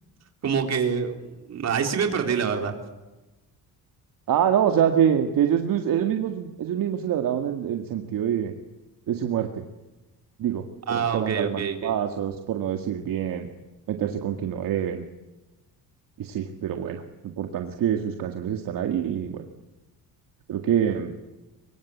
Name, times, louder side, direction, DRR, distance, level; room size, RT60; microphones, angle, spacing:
voice 1, 0.4-2.7 10.9-12.0 20.9-21.0, right 6 dB, 40° right, 4 dB, 3.9 m, -26 dB
voice 2, 4.3-8.5 9.1-9.6 10.4-13.5 13.9-15.0 16.2-17.0 17.4-19.4 20.5-21.1, right 9 dB, 55° right, 5 dB, 2.1 m, -25 dB
24.5 x 23.5 x 8.5 m, 1.1 s
cardioid pair, 160°, 40 cm